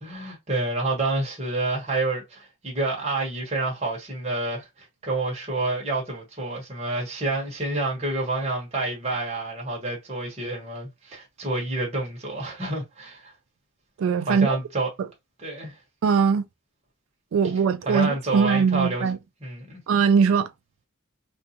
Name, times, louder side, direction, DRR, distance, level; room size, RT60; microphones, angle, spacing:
voice 1, 0.0-13.3 14.2-14.9 15.4-15.8 17.9-19.1 19.4-19.8, right 2 dB, 30° right, 1.1 m, -28 dB
voice 2, 14.0-14.6 15.0-15.1 16.0-16.4 17.3-19.2 19.9-20.5, right 6 dB, 75° right, 0.3 m, -21 dB
2.5 x 2.3 x 2.8 m
head